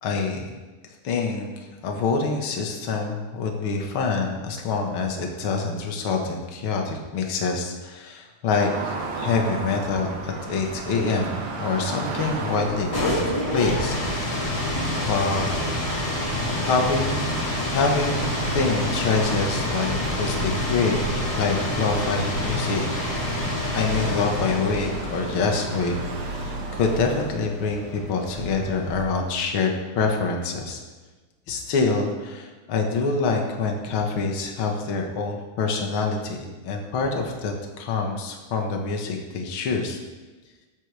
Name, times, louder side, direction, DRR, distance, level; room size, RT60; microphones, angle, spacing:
voice 1, 0.0-0.5 1.0-1.5 1.8-15.6 16.4-17.4 17.7-21.0 21.4-22.9 23.7-26.0 26.2-30.8 31.5-40.0, left 4 dB, 50° left, 2 dB, 1.7 m, -26 dB
sound 1, 8.5-27.4, right 3 dB, 55° right, 2.0 m, -35 dB
sound 2, 12.6-29.3, left 1 dB, 35° left, 5.1 m, -28 dB
20.5 x 9.0 x 3.5 m, 1.3 s
omnidirectional pair, 4.4 m